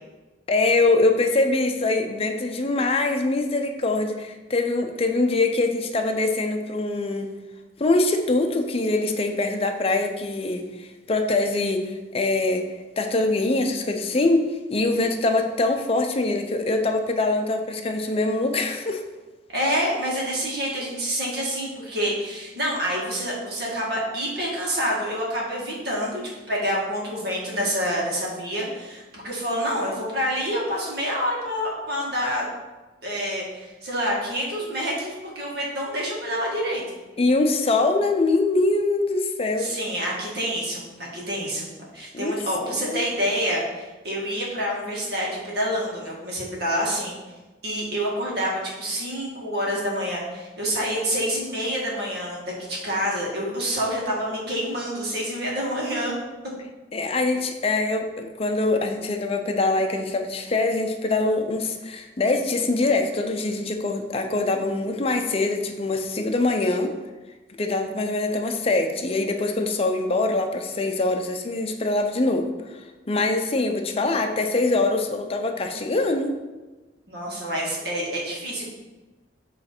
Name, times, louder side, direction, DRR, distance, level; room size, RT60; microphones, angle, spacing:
voice 1, 0.5-7.3 7.8-12.6 13.0-14.4 14.7-19.0 37.2-39.8 42.1-43.1 56.9-66.9 67.6-72.5 73.1-76.3, left 2 dB, 35° left, 5 dB, 0.6 m, -23 dB
voice 2, 19.5-26.2 26.5-32.5 33.0-37.0 39.6-47.1 47.6-56.1 77.1-78.7, equal, 60° right, -3 dB, 1.7 m, -27 dB
7.2 x 3.2 x 4.4 m, 1.2 s
head